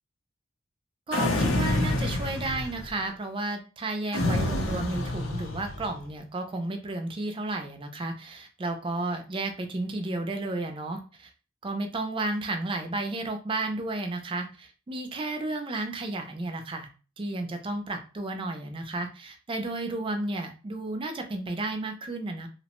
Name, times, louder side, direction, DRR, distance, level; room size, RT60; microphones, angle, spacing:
sound 1, 1.1-3.0 4.1-5.9, left 1 dB, 75° left, 0.6 m, -28 dB
voice 1, 1.1-11.3 11.6-16.9 17.2-22.5, right 2 dB, 25° right, 5 dB, 0.4 m, -32 dB
2.8 x 2.1 x 2.9 m, 0.35 s
head